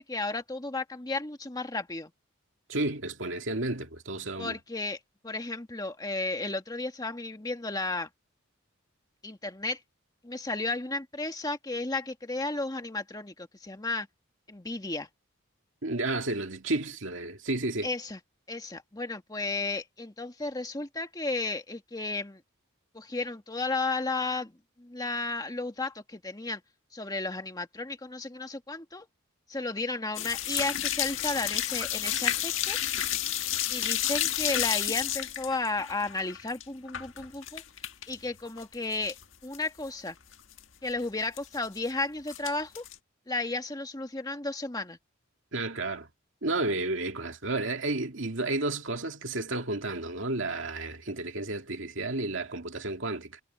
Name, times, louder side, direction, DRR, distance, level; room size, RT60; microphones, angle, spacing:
voice 1, 0.0-2.1 4.4-5.0 5.2-8.1 9.2-9.8 10.2-14.1 14.5-15.1 17.8-18.2 18.5-22.4 22.9-24.5 24.8-26.6 26.9-29.1 29.5-32.8 33.7-37.6 38.1-39.2 39.4-40.1 40.8-42.9 43.3-45.0, left 3 dB, 20° left, 1.6 m, -33 dB
voice 2, 2.7-4.5 15.8-17.9 45.5-46.1 46.4-53.4, right 2 dB, 65° right, 2.3 m, -32 dB
sound 1, 30.1-38.2 38.5-39.2 39.5-39.6 40.1-40.2 40.3-40.6 41.4-41.9 42.3-42.9, left 11 dB, 70° left, 1.7 m, -31 dB
head